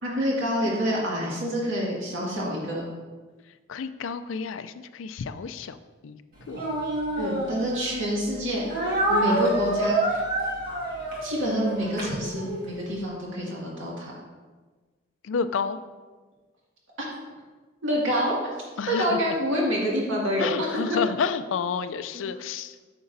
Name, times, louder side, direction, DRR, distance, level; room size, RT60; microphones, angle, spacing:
voice 1, 0.0-2.9 7.2-10.2 11.2-14.1 17.0-17.1 17.8-18.5 18.9-21.0 22.1-22.2, equal, 70° right, -5 dB, 2.1 m, -27 dB
voice 2, 3.7-5.8 6.0-6.2 6.5-6.6 15.2-15.8 18.8-19.2 20.4-22.7, left 5 dB, 75° left, 11 dB, 0.4 m, -30 dB
Speech, 6.5-8.1 8.7-12.7, right 1 dB, 45° right, 1.8 m, -27 dB
8.8 x 6.8 x 2.7 m, 1.4 s
head